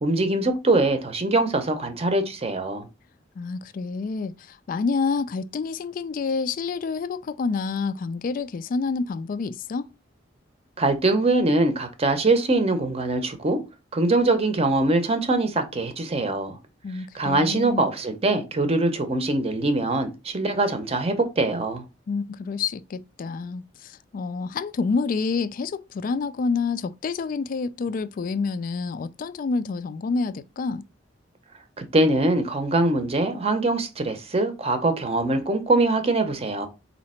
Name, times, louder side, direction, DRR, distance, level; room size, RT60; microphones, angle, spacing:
voice 1, 0.0-2.9 10.8-13.6 13.9-16.5 17.1-21.8 31.8-36.7, right 2 dB, 35° right, 0.7 m, -23 dB
voice 2, 3.4-9.9 16.8-17.9 22.1-30.8, left 4 dB, 45° left, 0.3 m, -28 dB
4.1 x 2.8 x 4.2 m
head